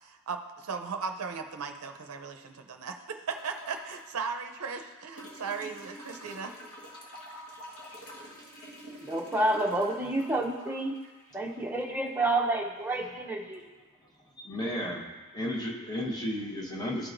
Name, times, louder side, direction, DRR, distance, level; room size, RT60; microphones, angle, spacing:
voice 1, 0.0-6.5, right 5 dB, 70° right, 0.5 m, -37 dB
sound 1, 3.3-4.1 5.2-12.2 13.5-13.6, equal, 75° left, 1.4 m, -47 dB
voice 2, 9.0-11.0 11.3-13.6, right 2 dB, 10° right, 0.7 m, -29 dB
voice 3, 14.4-15.1 15.3-17.1, left 1 dB, 20° left, 1.0 m, -33 dB
13.0 x 4.7 x 2.5 m
head